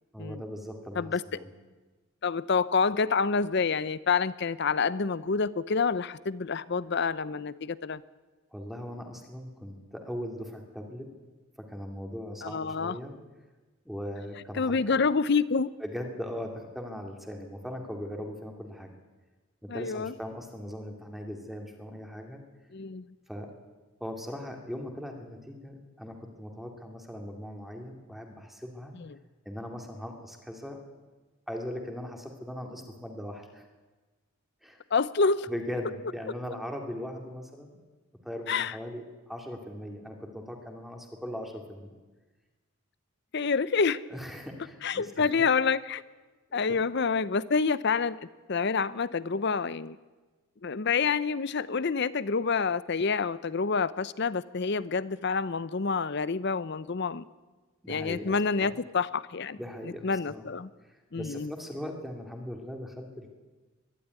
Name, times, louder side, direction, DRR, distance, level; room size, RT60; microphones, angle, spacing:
voice 1, 0.1-1.5 8.5-11.1 11.7-13.1 13.8-15.0 15.8-18.9 19.6-22.4 23.3-23.5 24.0-28.9 29.4-30.8 31.5-33.7 34.6-34.8 35.5-37.8 38.2-41.9 44.1-45.2 46.5-46.6 57.8-58.7 59.6-60.4 60.8-63.3, equal, ahead, 2 dB, 2.5 m, -39 dB
voice 2, 2.2-8.0 12.4-13.0 14.5-15.7 19.7-20.1 22.7-23.1 29.0-29.2 34.9-35.5 38.5-38.8 43.3-44.0 44.8-46.0 46.5-48.2 48.5-50.0 50.6-57.2 57.9-59.6 59.8-60.7 61.1-61.5, left 5 dB, 50° left, 17 dB, 0.6 m, -28 dB
22.0 x 12.5 x 9.5 m, 1.3 s
head